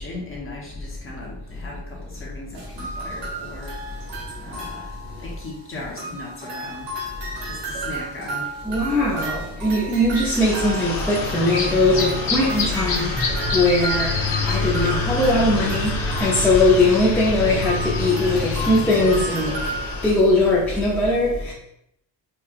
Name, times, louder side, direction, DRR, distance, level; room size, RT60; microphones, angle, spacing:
voice 1, 0.0-3.8 4.4-4.9 5.2-6.9 7.4-8.5, left 2 dB, 30° left, 1.0 m, -37 dB
sound 1, 2.5-5.6 6.0-19.9, right 2 dB, 80° right, 1.3 m, -33 dB
voice 2, 8.6-13.2 13.5-14.2 14.4-19.5 20.0-21.5, left 2 dB, 5° left, 0.5 m, -20 dB
sound 2, 10.3-20.2, left 3 dB, 55° left, 1.2 m, -26 dB
4.4 x 2.3 x 2.4 m
cardioid pair, 135°, 42 cm